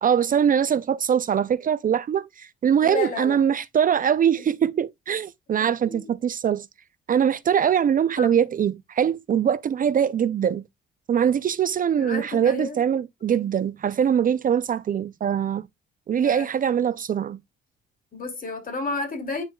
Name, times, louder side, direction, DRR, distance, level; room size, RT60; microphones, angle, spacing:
voice 1, 0.0-6.7 7.1-10.6 11.1-15.7 16.1-17.4, right 8 dB, 45° right, 0.5 m, -22 dB
voice 2, 2.8-3.4 5.6-6.1 8.2-8.4 12.0-12.8 16.1-16.5 18.1-19.4, left 3 dB, 45° left, 3.2 m, -32 dB
9.0 x 5.2 x 2.3 m
cardioid pair, 90°, 20 cm